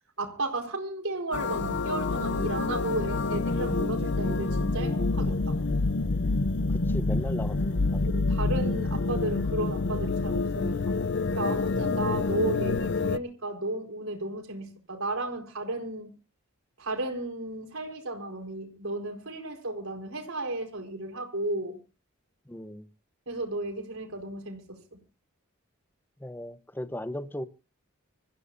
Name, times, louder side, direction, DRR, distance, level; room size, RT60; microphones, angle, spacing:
voice 1, 0.2-5.6 8.1-11.0 11.4-16.1 16.8-21.8 23.3-24.8, right 2 dB, 75° right, 4.6 m, -34 dB
sound 1, 1.3-13.2, left 3 dB, 55° left, 0.7 m, -27 dB
voice 2, 6.7-7.7 22.5-22.9 26.2-27.4, left 1 dB, 10° left, 0.9 m, -37 dB
26.0 x 15.0 x 2.7 m
head